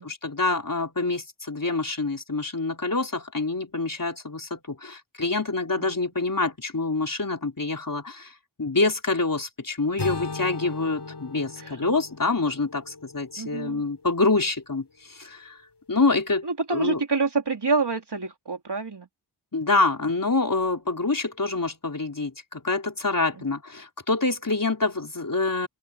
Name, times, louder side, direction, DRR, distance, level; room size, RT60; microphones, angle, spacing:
voice 1, 0.0-8.3 8.6-15.6 15.9-16.5 16.7-17.0 19.5-25.7, left 3 dB, 45° left, 4.1 m, -26 dB
sound 1, 10.0-14.0, left 4 dB, 60° left, 4.5 m, -37 dB
voice 2, 11.6-11.9 13.4-13.8 16.4-19.1 23.4-23.5, right 4 dB, 60° right, 3.7 m, -27 dB
open air
wide cardioid pair, 60°, 45 cm